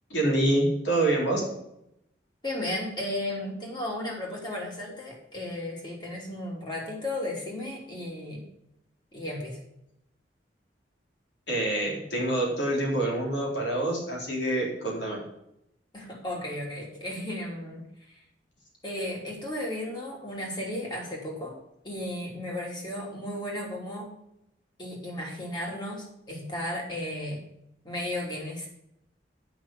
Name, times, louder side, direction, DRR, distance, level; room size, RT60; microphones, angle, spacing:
voice 1, 0.1-1.4 11.5-15.2, right 1 dB, 80° left, -3 dB, 3.8 m, -26 dB
voice 2, 2.4-8.5 9.1-9.6 15.9-18.2 18.8-21.6 21.8-24.1 24.8-27.4 27.8-28.7, left 1 dB, 25° left, -2 dB, 3.0 m, -34 dB
8.8 x 6.0 x 7.2 m, 0.80 s
head